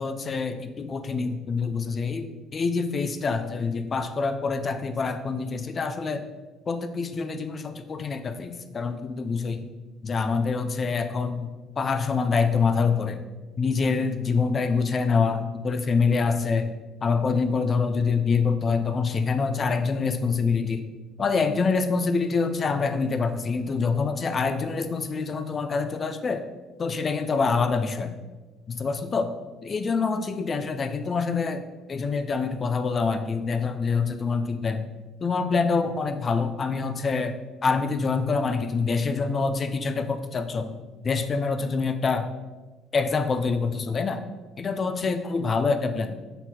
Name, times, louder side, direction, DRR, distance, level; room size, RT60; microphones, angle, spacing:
voice 1, 0.0-6.2 6.7-9.7 10.0-11.5 11.8-13.2 13.6-16.7 17.0-20.8 21.2-26.4 26.8-28.2 28.7-29.3 29.6-34.9 35.2-42.3 42.9-44.2 44.6-46.1, left 4 dB, 30° left, 9 dB, 0.4 m, -26 dB
6.1 x 4.0 x 4.2 m, 1.3 s
cardioid pair, 160°, 0 cm